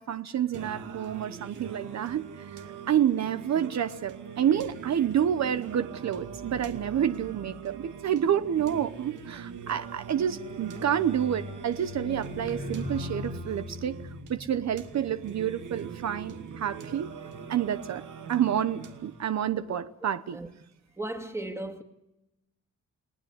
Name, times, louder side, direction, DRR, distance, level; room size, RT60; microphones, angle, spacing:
voice 1, 0.0-2.6 2.9-14.0 14.3-17.1 17.5-20.4, right 9 dB, 60° right, 0.9 m, -29 dB
Singing, 0.5-19.5, right 7 dB, 80° right, 2.5 m, -43 dB
sound 1, 6.1-17.7 18.5-18.8, left 3 dB, 40° left, 2.3 m, -43 dB
voice 2, 21.0-21.8, right 1 dB, 10° right, 2.3 m, -36 dB
30.0 x 19.5 x 9.6 m
wide cardioid pair, 130°, 30 cm